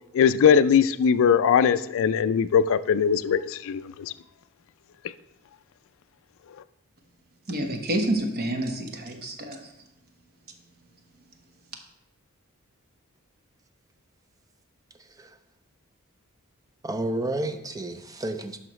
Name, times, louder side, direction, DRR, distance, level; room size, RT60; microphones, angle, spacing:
voice 1, 0.1-4.1, left 7 dB, 65° left, 14 dB, 0.3 m, -20 dB
voice 2, 7.5-9.6, right 1 dB, 45° right, 4 dB, 1.1 m, -28 dB
voice 3, 16.8-18.6, right 1 dB, 15° right, 8 dB, 0.5 m, -31 dB
11.0 x 5.6 x 3.0 m, 0.89 s
head